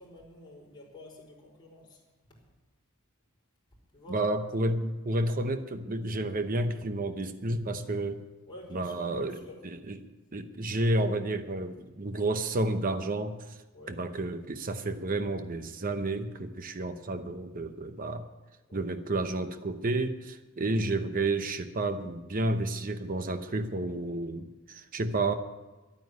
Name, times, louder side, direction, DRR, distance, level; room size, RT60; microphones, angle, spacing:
voice 1, 0.0-2.0 3.9-4.3 8.5-9.6 13.7-14.0 18.7-18.9, left 2 dB, 20° left, -4 dB, 4.9 m, -49 dB
voice 2, 4.1-8.2 8.7-9.4 9.6-10.0 10.3-13.6 13.9-18.2 18.7-25.3, right 2 dB, 40° right, 8 dB, 0.8 m, -31 dB
12.0 x 9.4 x 9.5 m, 1.2 s
head